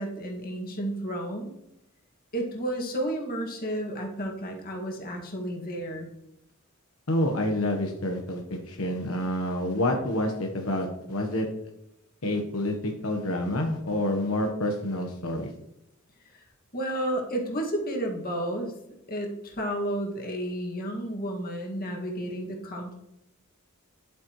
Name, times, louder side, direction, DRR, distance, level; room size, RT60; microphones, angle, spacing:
voice 1, 0.0-1.5 2.3-6.1 16.3-16.4 16.7-18.7 19.1-23.0, right 1 dB, 45° left, 0 dB, 2.0 m, -32 dB
voice 2, 7.1-11.5 12.2-15.5, left 1 dB, 80° left, 3 dB, 1.1 m, -28 dB
10.5 x 8.4 x 3.1 m, 0.84 s
head